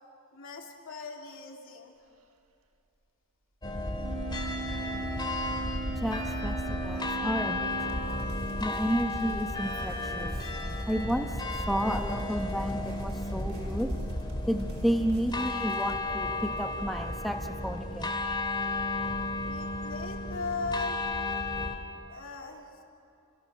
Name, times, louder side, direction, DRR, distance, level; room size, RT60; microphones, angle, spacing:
voice 1, 0.3-1.9 19.5-21.3 22.1-22.8, left 4 dB, 65° left, 1 dB, 3.1 m, -38 dB
sound 1, 3.6-21.8, left 2 dB, 20° left, 2.6 m, -33 dB
Wind instrument woodwind instrument, 3.9-8.7, right 4 dB, 90° right, 1.2 m, -39 dB
voice 2, 5.6-8.1 8.6-10.3 10.9-11.3 11.7-13.9 14.5-18.1 19.0-19.1, equal, ahead, 4 dB, 1.0 m, -32 dB
sound 2, 7.7-16.0, right 1 dB, 70° right, 3.7 m, -50 dB
29.0 x 25.0 x 6.3 m, 2.6 s
head